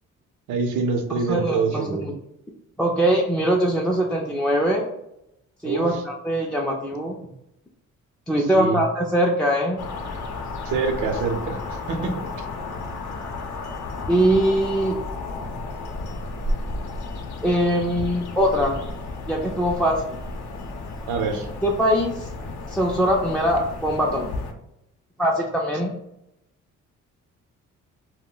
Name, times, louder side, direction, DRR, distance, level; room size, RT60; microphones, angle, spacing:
voice 1, 0.5-2.1 5.6-6.0 8.4-8.8 10.6-12.5 21.1-21.5, right 4 dB, 80° right, 5 dB, 0.6 m, -26 dB
voice 2, 1.3-2.1 2.8-4.9 5.6-5.9 6.2-7.1 8.3-9.8 14.1-15.0 17.4-18.8 19.3-20.2 21.6-22.3 22.7-24.3 25.2-25.9, equal, 5° left, -2 dB, 0.3 m, -22 dB
sound 1, 9.8-24.5, left 2 dB, 65° left, 0.6 m, -33 dB
2.2 x 2.1 x 3.7 m, 0.83 s
cardioid pair, 90°, 30 cm